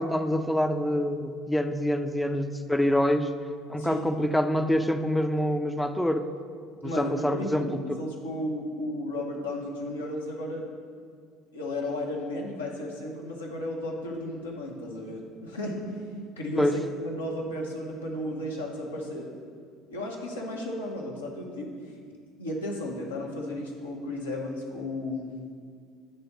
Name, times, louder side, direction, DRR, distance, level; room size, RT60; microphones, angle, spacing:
voice 1, 0.0-3.3 3.7-6.3 6.8-8.0 16.6-16.8, left 1 dB, 5° left, 8 dB, 0.5 m, -26 dB
voice 2, 6.8-10.7 11.5-15.9 16.4-19.3 19.9-21.7 22.4-25.3, left 1 dB, 85° left, -2 dB, 1.0 m, -34 dB
9.0 x 3.4 x 5.8 m, 2.1 s
figure-of-eight pair, 60°, 0 cm